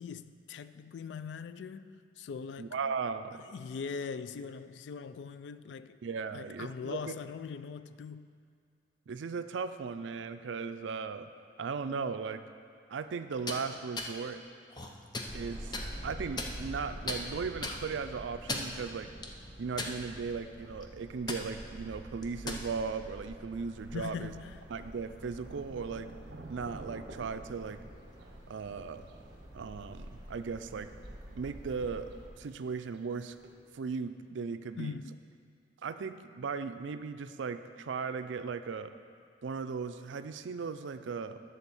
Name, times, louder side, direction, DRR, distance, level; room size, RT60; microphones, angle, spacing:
voice 1, 0.0-2.8 3.4-6.0 6.3-8.3 23.9-24.7 34.8-35.1, left 6 dB, 65° left, 0.3 m, -41 dB
voice 2, 2.6-3.5 6.0-7.1 9.1-11.3 11.6-12.4 12.9-14.4 15.3-15.7 16.0-19.1 19.6-24.3 24.7-26.1 26.5-27.8 28.5-29.0 29.5-30.9 31.3-32.1 32.4-33.4 33.7-34.9 35.8-38.9 39.4-41.4, right 5 dB, 75° right, 0.4 m, -37 dB
sound 1, 13.3-13.6 14.0-14.1 14.7-15.3 15.7-15.9 16.4-16.8 17.1-17.2 17.6-17.8 18.3-18.8 19.2-19.3 19.8-20.3 20.6-20.8 21.3-21.4 22.2-22.6, left 2 dB, 25° left, 0.6 m, -36 dB
sound 2, 15.2-32.3, right 1 dB, 20° right, 1.5 m, -47 dB
Thunder, 23.8-33.8, right 2 dB, 60° right, 0.8 m, -54 dB
11.0 x 4.1 x 7.0 m
head